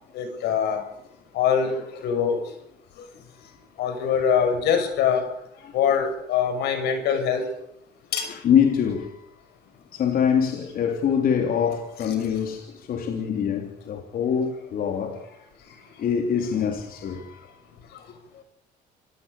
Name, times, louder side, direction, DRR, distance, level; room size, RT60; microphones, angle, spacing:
voice 1, 0.1-0.8 1.3-1.8 2.0-2.4 3.8-5.2 5.7-7.4 8.1-8.3 14.3-14.4, left 7 dB, 80° left, 6.5 m, -23 dB
voice 2, 8.2-9.2 9.9-15.2 16.0-17.6 18.3-18.4, left 7 dB, 60° left, 3.3 m, -25 dB
27.0 x 17.5 x 6.9 m
cardioid pair, 110°, 17 cm